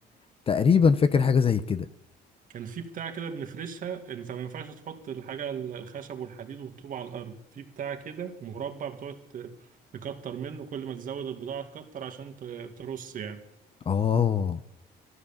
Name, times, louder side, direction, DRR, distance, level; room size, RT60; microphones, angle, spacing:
voice 1, 0.5-1.8 13.9-14.6, left 6 dB, 35° left, 0.8 m, -22 dB
voice 2, 2.5-9.5 9.9-13.4, right 7 dB, 55° right, 2.0 m, -37 dB
13.5 x 12.5 x 7.2 m
cardioid pair, 110°, 17 cm